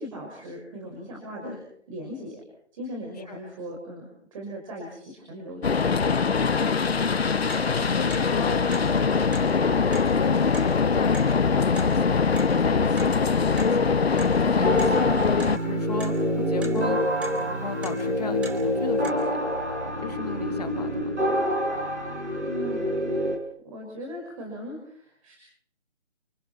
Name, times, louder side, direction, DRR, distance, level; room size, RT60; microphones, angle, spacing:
voice 1, 0.0-1.6 1.9-2.4 2.7-4.1 4.3-6.7 22.4-23.0 23.6-25.4, equal, 30° right, -1 dB, 5.9 m, -39 dB
sound 1, 5.6-15.6, left 5 dB, 60° left, 0.9 m, -22 dB
Clock, 7.1-19.1, right 2 dB, 5° right, 1.1 m, -45 dB
voice 2, 7.7-12.3 12.6-15.0 15.6-16.2 16.5-17.0 17.6-19.4 20.0-21.0, left 5 dB, 35° left, 7 dB, 2.0 m, -35 dB
sound 2, 14.6-23.4, equal, 75° right, 7.7 m, -27 dB
29.0 x 26.5 x 4.4 m, 0.62 s
figure-of-eight pair, 150°, 35 cm